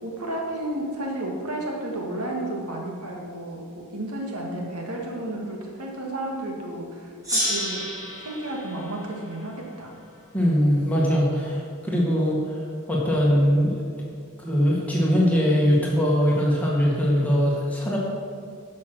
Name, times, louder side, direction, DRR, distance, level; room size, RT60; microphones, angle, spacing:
voice 1, 0.0-7.9 8.2-9.9, right 1 dB, 85° right, -1 dB, 1.8 m, -32 dB
Gong, 7.2-10.4, equal, 15° right, 2.7 m, -31 dB
voice 2, 10.3-12.6 12.9-13.8 14.4-18.0, equal, 5° left, -5 dB, 1.8 m, -21 dB
9.9 x 6.4 x 6.0 m, 2.2 s
head